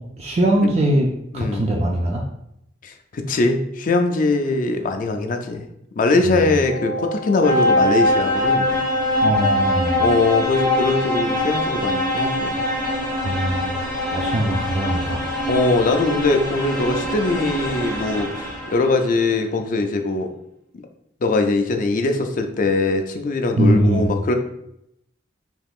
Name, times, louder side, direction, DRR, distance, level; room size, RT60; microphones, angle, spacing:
voice 1, 0.2-1.1 1.3-2.2 6.3-6.5 9.2-10.0 13.2-13.7 14.1-15.3 23.6-24.1, right 1 dB, 35° right, -1 dB, 0.4 m, -21 dB
voice 2, 1.3-1.6 2.8-5.7 6.0-8.7 10.0-12.7 15.5-20.3 21.2-24.3, left 3 dB, 45° left, 6 dB, 0.4 m, -21 dB
sound 1, 6.3-19.1, left 1 dB, 10° left, 0.8 m, -23 dB
3.5 x 2.9 x 2.4 m, 0.78 s
head